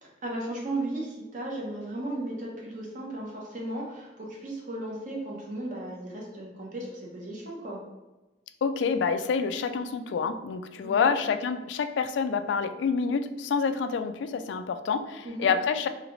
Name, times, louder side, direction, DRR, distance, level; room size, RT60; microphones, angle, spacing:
voice 1, 0.0-7.8 10.8-11.1 15.2-15.5, right 1 dB, 45° right, -2 dB, 0.9 m, -35 dB
voice 2, 8.6-15.9, left 5 dB, 80° left, 10 dB, 0.3 m, -27 dB
3.2 x 2.8 x 3.8 m, 1.1 s
head